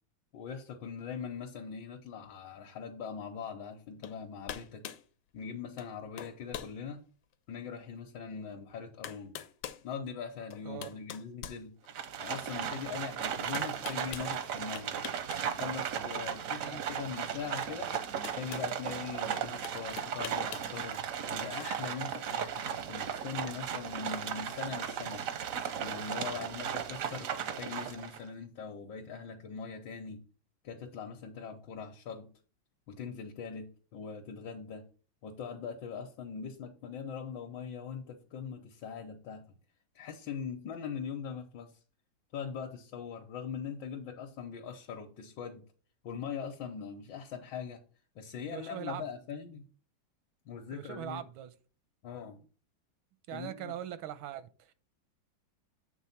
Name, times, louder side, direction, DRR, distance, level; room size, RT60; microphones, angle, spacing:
voice 1, 0.3-4.9 5.3-7.1 7.5-9.4 9.8-11.7 12.2-15.0 15.5-17.9 18.3-21.0 21.3-25.2 25.8-30.2 30.6-32.3 32.9-34.8 35.2-39.6 39.9-41.7 42.3-45.6 46.0-47.8 48.1-49.6 50.5-51.2 52.0-52.4 53.3-53.7, left 6 dB, 70° left, 1.5 m, -41 dB
sound 1, 4.0-4.2 4.5-5.1 5.8-5.9 6.2-6.8 7.3-7.4 8.5-8.6 9.0-9.8 10.5-12.2 13.5-14.3 14.8-15.4 15.7-15.9 17.3-17.4 17.9-18.7 19.6-20.7, left 10 dB, 90° left, 1.5 m, -43 dB
voice 2, 10.7-11.0 16.6-16.9 48.5-49.0 50.7-51.5 53.3-54.7, right 11 dB, 85° right, 1.4 m, -41 dB
Livestock farm animals working animals, 11.9-28.2, right 8 dB, 70° right, 0.8 m, -36 dB
7.6 x 3.5 x 5.7 m
omnidirectional pair, 2.2 m